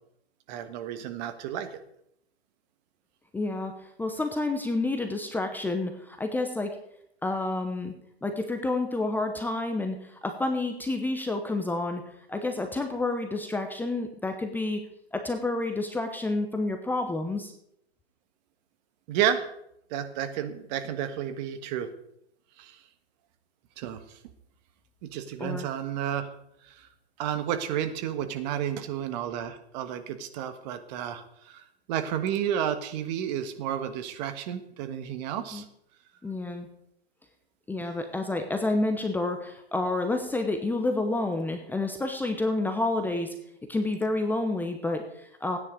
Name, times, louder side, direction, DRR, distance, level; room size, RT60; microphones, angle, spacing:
voice 1, 0.5-1.8 19.1-19.5 19.9-21.9 22.6-22.8 23.8-24.0 25.0-26.3 26.7-26.9 27.2-31.6 31.9-35.6, right 9 dB, 40° right, 9 dB, 1.4 m, -31 dB
voice 2, 3.3-6.7 7.2-7.9 8.2-12.0 12.3-14.8 15.1-17.5 25.4-25.7 35.5-35.6 36.2-36.7 37.7-43.3 43.7-45.6, left 2 dB, 5° left, 5 dB, 0.9 m, -29 dB
15.0 x 9.9 x 5.1 m, 0.74 s
hypercardioid pair, 130°, 32 cm